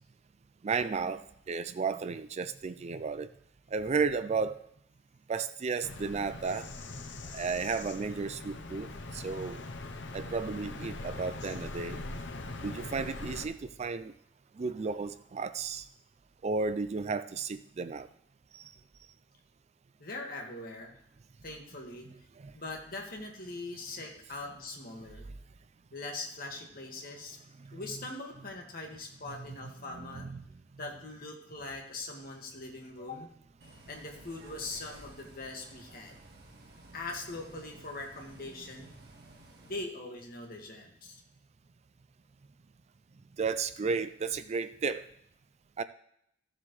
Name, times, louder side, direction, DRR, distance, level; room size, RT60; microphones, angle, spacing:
voice 1, 0.6-3.3 3.7-4.6 5.3-6.7 7.3-9.6 10.1-12.0 12.6-14.1 14.6-15.9 16.4-18.1 18.5-18.7 22.4-22.5 27.7-27.8 29.6-30.4 43.4-45.1 45.8-45.9, right 4 dB, 35° right, 13 dB, 0.4 m, -33 dB
Bird vocalization bird call bird song, 5.8-13.4, left 2 dB, 70° left, 0.9 m, -42 dB
voice 2, 20.0-21.0 21.4-22.1 22.5-25.3 25.9-27.4 27.7-30.3 30.8-33.3 33.9-36.2 36.9-38.9 39.6-41.2, left 2 dB, 50° left, 1 dB, 2.0 m, -42 dB
Bus, 33.6-39.7, right 2 dB, 60° right, 1.7 m, -54 dB
14.5 x 7.4 x 3.2 m, 0.75 s
head